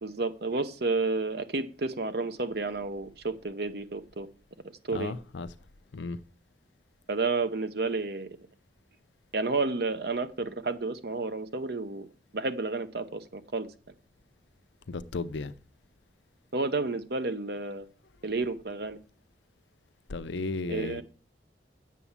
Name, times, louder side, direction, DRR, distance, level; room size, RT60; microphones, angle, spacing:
voice 1, 0.0-4.3 4.8-5.1 7.1-8.3 9.3-12.1 12.3-13.7 16.5-17.9 18.2-19.0 20.7-21.0, right 3 dB, 60° right, 0.9 m, -31 dB
voice 2, 4.9-5.5 5.9-6.2 14.9-15.5 20.1-21.0, left 3 dB, 80° left, 0.6 m, -34 dB
8.4 x 7.0 x 7.1 m
head